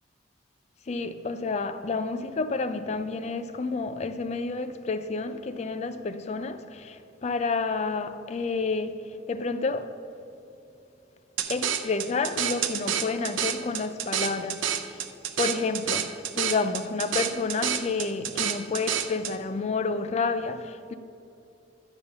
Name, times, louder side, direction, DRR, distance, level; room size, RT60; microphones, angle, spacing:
voice 1, 0.9-9.9 11.5-15.0 15.4-20.9, left 4 dB, 35° left, 0.4 m, -30 dB
sound 1, 11.4-19.3, right 9 dB, 90° right, 0.6 m, -29 dB
11.0 x 7.1 x 5.5 m
head